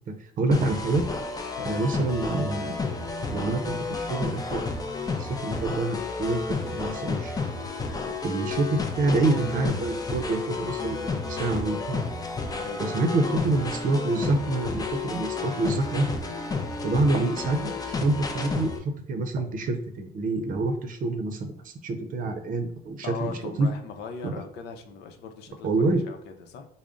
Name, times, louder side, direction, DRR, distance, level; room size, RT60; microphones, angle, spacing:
voice 1, 0.1-1.1 1.7-2.7 3.3-4.6 5.2-7.3 8.1-12.1 12.8-16.1 16.8-18.7 19.1-23.7 24.2-24.3 25.6-26.0, right 2 dB, 55° right, 6 dB, 0.6 m, -27 dB
sound 1, 0.5-18.8, left 4 dB, 20° left, 0.5 m, -31 dB
voice 2, 1.6-2.0 12.6-13.3 23.0-26.7, left 5 dB, 80° left, 5 dB, 0.6 m, -40 dB
3.7 x 2.0 x 3.6 m, 0.68 s
cardioid pair, 110°, 17 cm